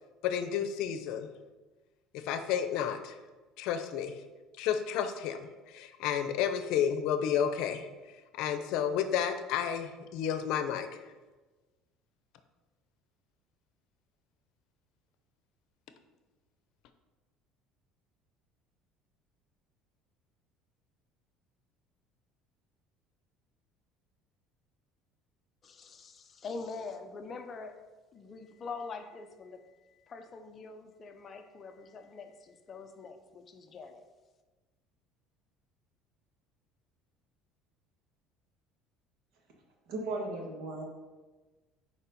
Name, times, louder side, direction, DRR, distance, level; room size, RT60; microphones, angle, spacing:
voice 1, 0.2-1.3 2.1-3.2 3.6-4.2 4.6-7.9 8.3-10.9, left 8 dB, 65° left, 9 dB, 0.7 m, -31 dB
voice 2, 25.6-27.9 28.1-34.0, left 4 dB, 30° left, 6 dB, 0.7 m, -44 dB
voice 3, 39.9-40.8, right 2 dB, 65° right, 0 dB, 1.8 m, -36 dB
7.1 x 4.8 x 5.3 m, 1.2 s
cardioid pair, 150°, 0 cm